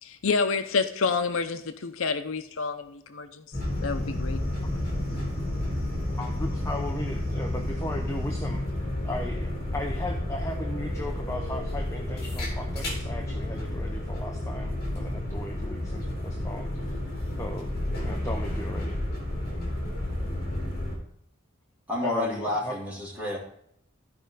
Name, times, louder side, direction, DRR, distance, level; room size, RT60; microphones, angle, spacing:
voice 1, 0.0-3.4 3.8-4.4, left 4 dB, 80° left, 9 dB, 0.7 m, -28 dB
sound 1, 3.5-21.0, left 1 dB, 50° left, 3.2 m, -31 dB
voice 2, 6.2-8.6 9.0-17.0 17.4-17.7 18.0-19.0 22.0-22.7, left 1 dB, 15° left, 3 dB, 0.6 m, -37 dB
voice 3, 21.9-23.4, left 2 dB, 5° right, -7 dB, 3.5 m, -29 dB
14.0 x 5.1 x 3.9 m, 0.69 s
head